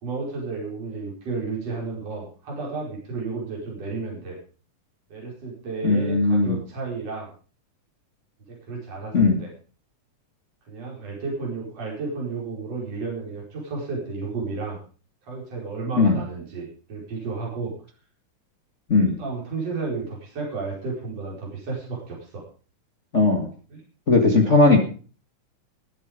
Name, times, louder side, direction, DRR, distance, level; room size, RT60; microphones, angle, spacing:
voice 1, 0.0-4.4 5.1-7.3 8.5-9.5 10.7-14.8 15.2-17.7 19.0-22.4 23.7-23.8 24.4-24.7, right 4 dB, 50° right, -3 dB, 6.0 m, -32 dB
voice 2, 5.8-6.6 9.1-9.4 16.0-16.2 18.9-19.2 23.1-23.5 24.1-24.8, left 3 dB, 30° left, 3 dB, 1.7 m, -18 dB
21.0 x 7.9 x 5.2 m, 0.39 s
omnidirectional pair, 3.6 m